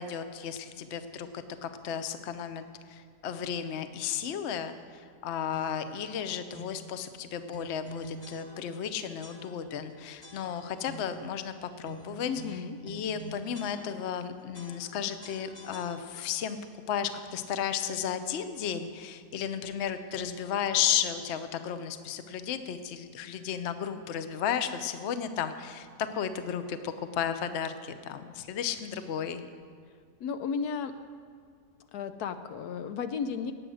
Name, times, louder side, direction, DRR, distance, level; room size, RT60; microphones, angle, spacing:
voice 1, 0.0-12.3 12.8-16.6 16.9-29.4, left 8 dB, 55° left, 10 dB, 0.9 m, -34 dB
sound 1, 5.5-5.9 6.5-6.9 7.5-8.9 9.2-9.8 10.2-11.3 11.8-14.2 14.5-16.4, equal, 20° left, 1.1 m, -47 dB
voice 2, 12.2-12.8 30.2-30.9 31.9-33.5, left 6 dB, 75° left, 9 dB, 1.2 m, -33 dB
19.0 x 7.9 x 6.4 m, 2.1 s
omnidirectional pair, 1.7 m